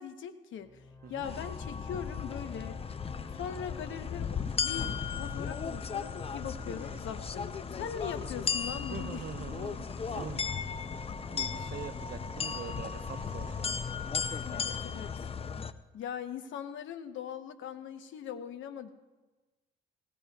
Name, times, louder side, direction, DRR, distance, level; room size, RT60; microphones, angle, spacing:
voice 1, 0.0-0.8 1.1-2.8 3.3-9.3 14.5-15.3 15.9-18.9, left 8 dB, 75° left, 9 dB, 0.9 m, -41 dB
sound 1, 0.5-14.9, left 3 dB, 10° left, 2.6 m, -51 dB
sound 2, 1.2-15.7, left 6 dB, 30° left, 0.5 m, -36 dB
sound 3, 3.9-15.3, right 2 dB, 10° right, 1.2 m, -54 dB
voice 2, 8.9-10.5 11.3-13.7, right 7 dB, 50° right, 9 dB, 0.8 m, -44 dB
19.0 x 18.5 x 2.4 m, 1.2 s
cardioid pair, 90°, 20 cm